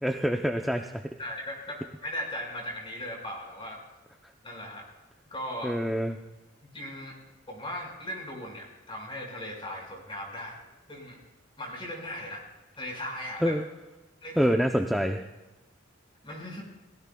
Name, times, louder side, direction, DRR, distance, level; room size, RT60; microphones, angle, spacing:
voice 1, 0.0-1.0 5.6-6.2 13.4-13.6 14.4-15.2, equal, ahead, 2 dB, 0.5 m, -26 dB
voice 2, 1.2-3.8 4.4-4.9 5.3-5.8 6.7-7.2 7.5-10.6 10.9-11.2 11.6-12.4 12.8-13.5 14.2-14.5 16.2-16.6, left 1 dB, 25° left, 0 dB, 5.3 m, -38 dB
29.5 x 18.0 x 2.3 m, 1.0 s
head